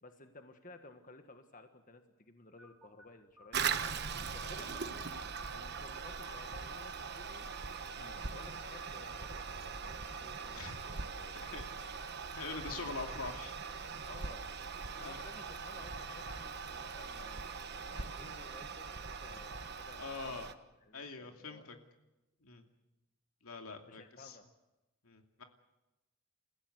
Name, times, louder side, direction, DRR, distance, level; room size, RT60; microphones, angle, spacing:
voice 1, 0.0-4.1 4.3-5.1 5.5-7.5 7.9-11.9 12.4-13.3 14.1-14.5 15.0-17.4 17.7-20.5 20.8-21.7 23.9-24.5, left 2 dB, 40° left, 7 dB, 1.5 m, -55 dB
sound 1, 2.6-12.1, equal, 5° right, 4.3 m, -64 dB
Toilet flush, 3.5-20.5, right 5 dB, 50° right, 1.2 m, -41 dB
voice 2, 11.3-11.9 12.3-13.5 14.9-15.2 20.0-20.5 20.9-21.8 22.4-22.7 23.4-24.4 25.0-25.4, left 4 dB, 85° left, 4 dB, 2.6 m, -44 dB
28.5 x 15.5 x 8.0 m, 1.0 s
head